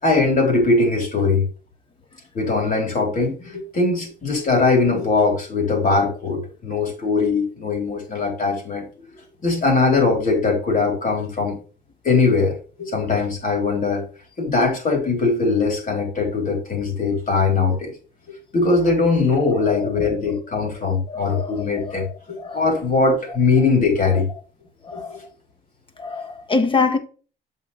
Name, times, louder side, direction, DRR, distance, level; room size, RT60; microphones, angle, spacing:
voice 1, 0.0-1.4 2.3-8.8 9.4-11.6 12.0-14.0 14.4-17.9 18.5-22.1 22.5-24.3 24.9-25.2, left 3 dB, 45° left, 4.0 m, -20 dB
voice 2, 21.1-21.7 22.4-22.6 24.9-25.2 26.0-27.0, left 4 dB, 25° left, 1.4 m, -24 dB
7.8 x 6.0 x 3.4 m
cardioid pair, 90°, 19 cm